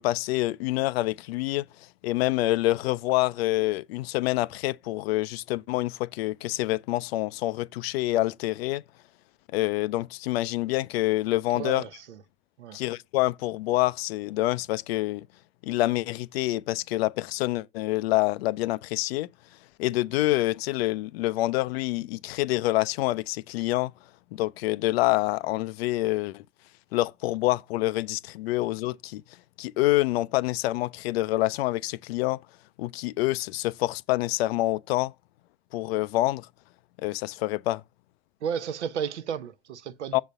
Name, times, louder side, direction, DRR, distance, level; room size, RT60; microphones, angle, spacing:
voice 1, 0.0-1.7 2.0-8.8 9.5-11.8 12.7-15.3 15.6-19.3 19.8-23.9 24.3-26.4 26.9-29.2 29.6-32.4 32.8-35.1 35.7-36.5 37.0-37.8 40.1-40.2, left 18 dB, 60° left, 0.5 m, -27 dB
voice 2, 11.5-12.2 12.6-12.8 38.4-40.2, right 8 dB, 75° right, 0.8 m, -33 dB
6.9 x 4.1 x 5.1 m
figure-of-eight pair, 70°, 35 cm